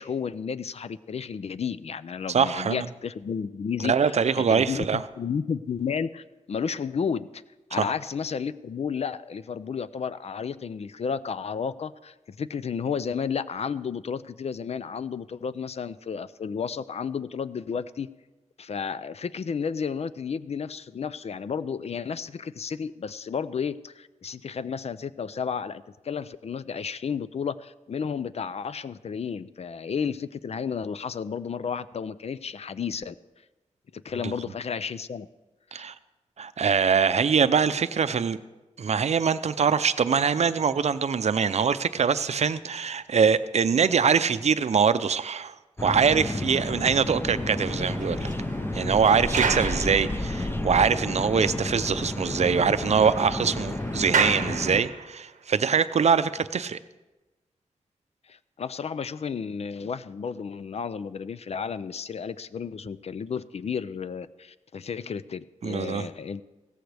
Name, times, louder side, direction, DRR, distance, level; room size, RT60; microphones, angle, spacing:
voice 1, 0.0-7.4 7.7-18.1 18.6-33.1 33.9-35.3 35.7-35.8 58.3-66.4, left 6 dB, 55° left, 15 dB, 0.4 m, -32 dB
voice 2, 2.3-2.9 3.8-5.0 7.8-7.9 34.2-34.3 35.7-35.9 36.4-38.4 38.8-45.5 45.8-48.3 48.7-56.8 65.6-66.1, right 6 dB, 60° right, 13 dB, 0.5 m, -23 dB
sound 1, 45.8-54.8, left 1 dB, 20° left, 0.7 m, -31 dB
sound 2, 47.2-50.7 51.2-51.3 51.7-51.8 52.1-55.3, right 6 dB, 85° right, 0.8 m, -32 dB
16.0 x 14.0 x 3.4 m, 1.1 s
wide cardioid pair, 100°, 13 cm